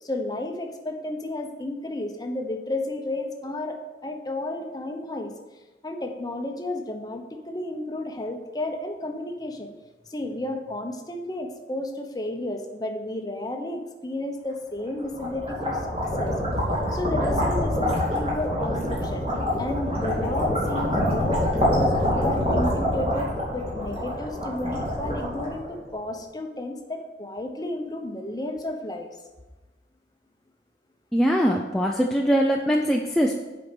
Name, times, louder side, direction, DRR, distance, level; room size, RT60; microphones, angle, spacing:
voice 1, 0.0-5.3 5.8-9.7 10.1-16.3 16.9-19.2 19.6-29.1, left 1 dB, 20° left, 4 dB, 0.9 m, -32 dB
sound 1, 14.9-26.0, left 1 dB, 35° right, 2.8 m, -26 dB
voice 2, 31.1-33.4, equal, ahead, -1 dB, 0.4 m, -22 dB
8.2 x 5.3 x 6.2 m, 1.2 s
head